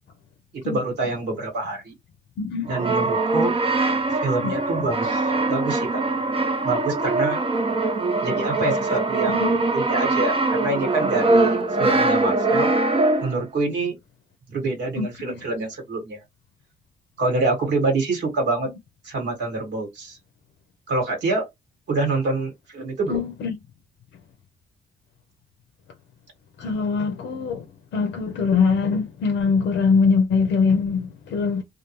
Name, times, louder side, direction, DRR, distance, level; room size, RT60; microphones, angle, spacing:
voice 1, 0.6-1.9 2.7-3.5 4.1-6.0 6.6-7.4 8.2-12.7 13.2-14.0 14.5-16.2 17.2-18.7 19.0-20.2 20.9-21.5 21.9-23.2, right 2 dB, 65° right, 1.4 m, -26 dB
voice 2, 2.4-2.7 4.4-4.9 9.3-9.6 15.0-15.3 23.1-23.6 26.6-27.7 27.9-31.6, left 5 dB, 70° left, 0.5 m, -23 dB
Brass instrument, 2.7-13.5, right 2 dB, 30° right, 0.6 m, -22 dB
2.3 x 2.2 x 3.0 m
supercardioid pair, 55°, 19 cm